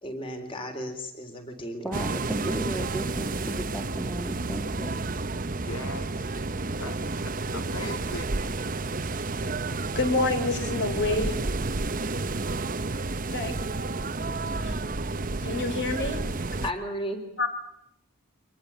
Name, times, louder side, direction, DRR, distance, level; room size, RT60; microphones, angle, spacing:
voice 1, 0.0-2.1 16.6-17.3, equal, 25° left, 6 dB, 3.8 m, -34 dB
voice 2, 1.8-5.0, right 1 dB, ahead, 5 dB, 1.7 m, -35 dB
sound 1, 1.9-16.7, right 3 dB, 35° right, 0.9 m, -31 dB
voice 3, 5.6-6.4 6.8-7.0 7.5-8.4, left 2 dB, 75° left, 9 dB, 2.8 m, -39 dB
voice 4, 10.0-11.4 13.3-13.6 14.6-14.8 15.4-16.2 17.4-17.5, left 2 dB, 50° left, 7 dB, 4.1 m, -27 dB
25.0 x 20.5 x 8.9 m, 0.75 s
head